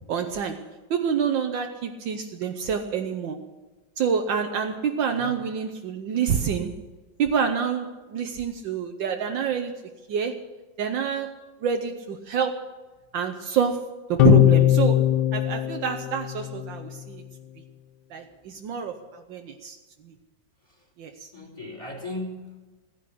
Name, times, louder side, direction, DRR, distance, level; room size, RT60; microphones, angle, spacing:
voice 1, 0.1-0.6 0.9-3.4 4.0-6.7 7.2-9.7 10.1-10.4 10.8-11.3 11.6-12.7 13.1-17.2 18.1-19.8 20.0-20.1 21.0-21.3, right 7 dB, 75° right, 5 dB, 1.6 m, -27 dB
sound 1, 14.2-16.8, left 14 dB, 65° left, 1.3 m, -20 dB
voice 2, 21.3-22.7, left 1 dB, 15° left, 0 dB, 3.7 m, -37 dB
15.5 x 10.5 x 8.4 m, 1.2 s
omnidirectional pair, 2.1 m